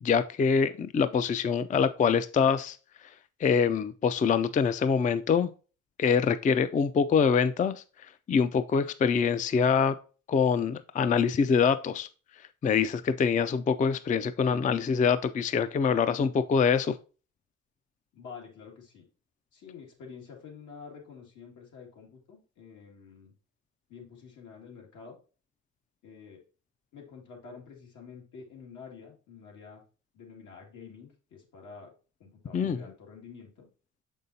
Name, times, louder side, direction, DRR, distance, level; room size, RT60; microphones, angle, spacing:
voice 1, 0.0-2.8 3.4-5.5 6.0-7.8 8.3-9.9 10.3-12.1 12.6-17.0 32.5-32.8, left 6 dB, 25° left, 12 dB, 0.4 m, -25 dB
voice 2, 18.1-19.1 19.5-23.3 23.9-25.2 26.0-26.4 26.9-29.8 30.1-31.9 32.2-33.7, left 5 dB, 80° left, 0 dB, 2.2 m, -48 dB
6.5 x 5.4 x 2.7 m, 0.36 s
cardioid pair, 90°, 30 cm